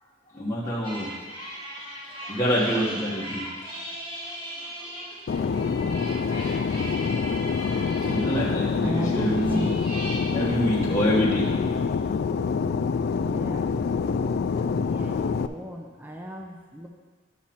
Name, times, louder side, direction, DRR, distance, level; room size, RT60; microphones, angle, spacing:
voice 1, 0.3-1.1 2.3-3.4 8.0-9.7 10.3-11.5, equal, 15° left, -7 dB, 1.4 m, -26 dB
sound 1, 0.8-10.2, equal, 25° right, 1.9 m, -38 dB
Fixed-wing aircraft airplane, 5.3-15.5, left 5 dB, 55° left, 0.3 m, -26 dB
voice 2, 8.8-9.7 10.3-10.6 13.2-14.3 14.7-15.2 15.4-16.9, equal, 10° right, 0 dB, 0.7 m, -34 dB
10.5 x 6.0 x 4.3 m, 1.4 s
head